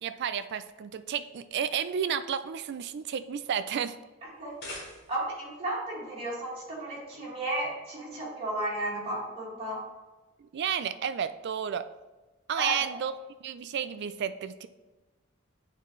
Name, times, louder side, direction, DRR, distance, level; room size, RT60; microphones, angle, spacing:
voice 1, 0.0-4.0 10.4-11.9 12.5-14.7, right 8 dB, 55° right, 12 dB, 0.4 m, -32 dB
sound 1, 4.3-5.4, left 2 dB, 55° left, 1.5 m, -44 dB
voice 2, 5.1-9.8 12.6-13.0, right 1 dB, 30° right, -7 dB, 2.2 m, -33 dB
9.1 x 4.0 x 3.2 m, 1.2 s
head